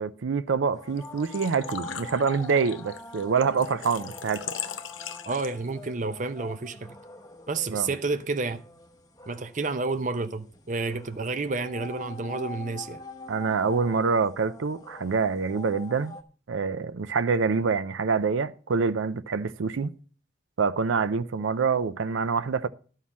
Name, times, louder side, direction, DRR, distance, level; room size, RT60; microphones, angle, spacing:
voice 1, 0.0-4.4 7.7-7.9 13.3-16.2 16.5-19.9 20.6-22.7, right 5 dB, 85° right, 0.5 m, -26 dB
sound 1, 0.7-16.2, left 2 dB, 20° left, 0.9 m, -44 dB
Engine / Trickle dribble / Fill (with liquid), 1.0-5.8, left 9 dB, 85° left, 0.8 m, -39 dB
voice 2, 5.3-6.9 7.5-8.6 9.3-13.0, right 3 dB, 40° right, 0.6 m, -30 dB
11.0 x 5.6 x 7.3 m
head